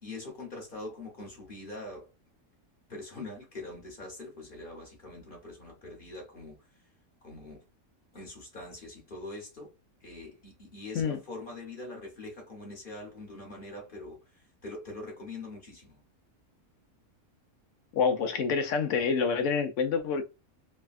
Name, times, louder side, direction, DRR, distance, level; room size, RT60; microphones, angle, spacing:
voice 1, 0.0-2.1 2.9-6.6 7.2-7.6 8.1-9.7 10.0-16.0, left 2 dB, 40° left, 1.1 m, -43 dB
voice 2, 17.9-20.2, left 5 dB, 70° left, 0.8 m, -27 dB
3.3 x 2.2 x 2.3 m
omnidirectional pair, 1.5 m